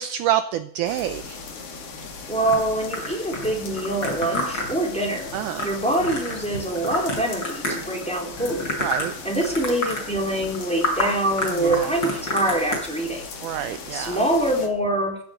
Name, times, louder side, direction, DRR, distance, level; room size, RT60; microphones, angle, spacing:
voice 1, 0.0-1.4 5.3-5.7 8.8-9.1 11.6-11.8 13.4-14.2, right 11 dB, 75° right, 11 dB, 2.0 m, -27 dB
sound 1, 0.8-14.7, left 4 dB, 50° left, 2.9 m, -38 dB
voice 2, 2.3-5.3 5.6-8.6 9.2-13.2 13.9-15.2, right 1 dB, ahead, 0 dB, 3.2 m, -24 dB
sound 2, 2.5-8.0 8.4-9.2 9.4-10.0 10.4-10.6 10.8-11.1 11.4-12.8, left 1 dB, 30° left, 5.6 m, -28 dB
15.5 x 8.8 x 7.8 m, 0.65 s
omnidirectional pair, 4.0 m